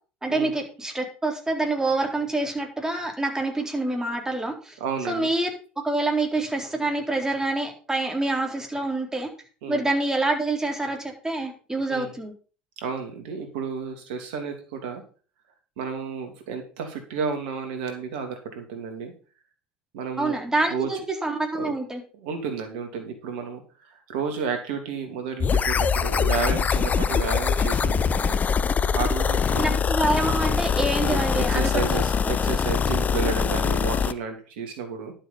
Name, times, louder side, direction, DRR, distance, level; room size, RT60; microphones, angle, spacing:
voice 1, 0.2-4.8 5.1-5.5 5.8-9.3 9.7-12.3 20.2-22.0 29.6-32.0, right 2 dB, 10° right, 2 dB, 3.9 m, -26 dB
voice 2, 4.8-5.3 9.6-9.8 11.9-12.1 12.8-15.0 15.8-19.1 19.9-20.4 20.7-20.9 21.6-21.7 22.1-28.4 28.7-29.7 31.0-35.1, right 5 dB, 65° right, 6 dB, 2.8 m, -32 dB
sound 1, 25.4-34.1, left 6 dB, 30° left, 0.7 m, -23 dB
11.5 x 7.3 x 5.6 m, 0.38 s
figure-of-eight pair, 70°, 5 cm